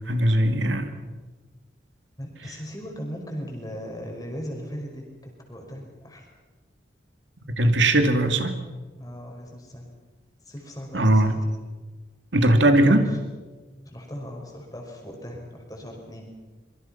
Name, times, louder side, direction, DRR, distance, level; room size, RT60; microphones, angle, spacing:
voice 1, 0.1-0.9 7.5-8.6 10.9-11.3 12.3-13.1, right 1 dB, 90° right, 6 dB, 2.4 m, -19 dB
voice 2, 2.2-6.3 9.0-9.9 10.4-11.4 12.8-13.2 13.9-16.3, equal, 20° left, 1 dB, 5.3 m, -38 dB
26.0 x 23.5 x 5.8 m, 1.3 s
head